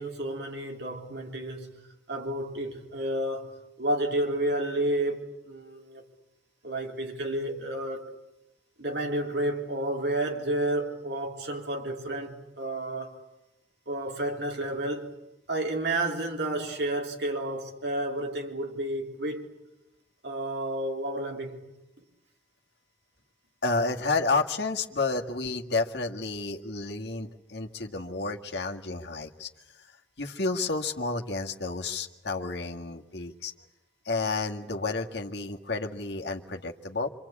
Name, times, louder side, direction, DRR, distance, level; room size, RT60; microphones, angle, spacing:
voice 1, 0.0-3.5 3.8-6.0 6.6-8.0 8.8-13.2 13.9-15.2 15.5-19.6 20.2-21.6, right 1 dB, 65° right, 3.7 m, -31 dB
voice 2, 23.6-29.5 30.2-33.5 34.1-37.1, left 3 dB, 65° left, 1.9 m, -30 dB
26.5 x 26.0 x 8.6 m
head